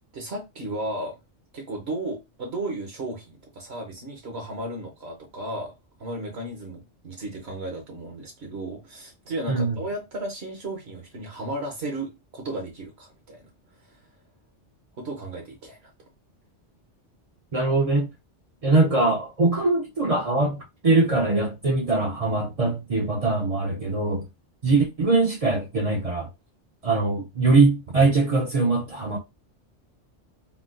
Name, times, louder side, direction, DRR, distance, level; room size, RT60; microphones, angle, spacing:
voice 1, 0.1-1.2 1.5-5.7 6.0-13.4 13.9-14.0 15.0-15.9, right 1 dB, 65° right, 1.1 m, -34 dB
voice 2, 17.5-18.1 18.6-20.6 20.8-24.2 24.6-26.3 26.8-29.2, right 3 dB, 45° right, 0.5 m, -22 dB
3.6 x 2.3 x 2.5 m
omnidirectional pair, 1.2 m